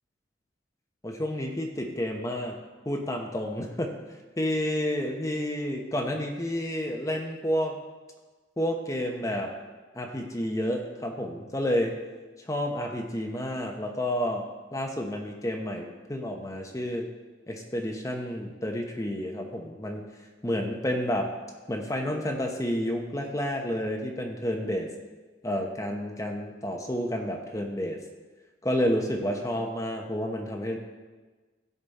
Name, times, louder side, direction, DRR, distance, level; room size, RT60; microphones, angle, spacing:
voice 1, 1.0-2.6 2.8-3.9 4.4-7.8 8.6-9.5 9.9-12.0 12.5-14.5 14.7-17.1 17.5-20.0 20.4-21.3 21.7-24.9 25.4-28.0 28.6-30.8, equal, 15° left, 1 dB, 0.9 m, -30 dB
14.5 x 5.3 x 4.2 m, 1.3 s
head